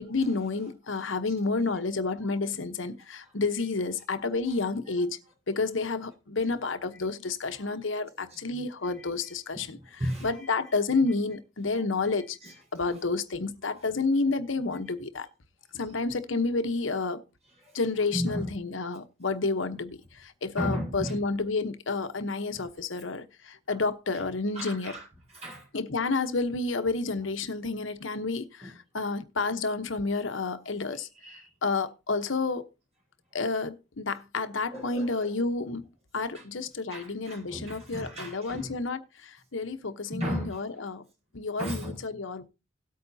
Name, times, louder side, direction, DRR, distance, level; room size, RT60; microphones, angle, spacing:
voice 1, 0.0-5.2 5.5-9.8 10.2-12.4 12.7-15.3 15.7-17.2 17.7-24.9 25.7-31.1 31.6-32.7 33.3-35.9 36.1-41.0 41.3-42.4, left 3 dB, 75° left, 1.0 m, -30 dB
voice 2, 4.2-4.6 7.6-8.4 9.0-9.1 9.5-10.5 11.8-11.9 12.4-13.0 13.7-13.8 17.6-17.8 18.1-18.5 20.6-21.2 24.1-24.2 24.5-25.7 28.6-28.7 30.9-31.5 34.7-35.3 36.3-36.4 36.9-38.7 40.1-40.6 41.6-42.0, equal, 35° right, 4.9 m, -36 dB
17.5 x 8.6 x 2.8 m
head